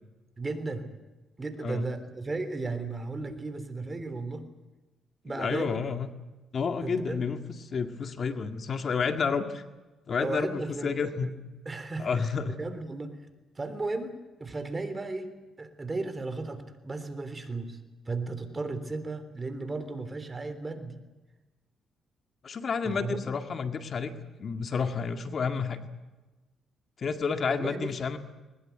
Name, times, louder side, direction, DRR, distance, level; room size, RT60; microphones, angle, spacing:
voice 1, 0.4-0.9 1.4-4.5 5.2-5.8 6.8-7.2 10.2-11.3 11.6-13.2 13.5-14.1 14.4-15.3 15.6-17.8 18.0-21.0 22.8-23.2 27.5-27.9, right 3 dB, 25° right, 10 dB, 3.4 m, -35 dB
voice 2, 5.3-6.1 6.5-9.6 10.1-11.3 12.0-12.6 22.4-24.1 24.4-25.8 27.0-28.2, left 5 dB, 50° left, 7 dB, 2.0 m, -30 dB
21.5 x 20.0 x 9.4 m, 1.2 s
cardioid pair, 90°, 0 cm